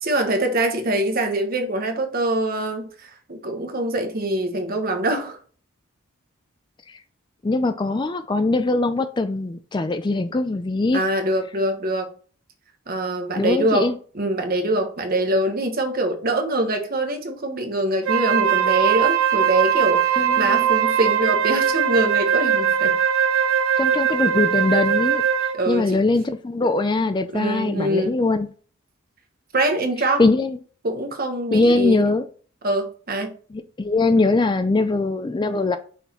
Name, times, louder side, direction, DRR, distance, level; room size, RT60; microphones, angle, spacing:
voice 1, 0.0-5.4 10.9-12.1 12.9-23.0 25.5-26.0 27.3-28.2 29.5-30.3 30.8-32.0 32.6-33.3, right 1 dB, 45° right, 1.1 m, -24 dB
voice 2, 7.4-11.0 13.4-13.9 20.2-20.7 23.8-28.5 30.2-30.6 31.5-32.3 33.5-35.8, left 2 dB, 20° left, 0.3 m, -21 dB
Wind instrument woodwind instrument, 18.0-25.7, right 8 dB, 80° right, 0.9 m, -20 dB
5.8 x 4.1 x 4.3 m
head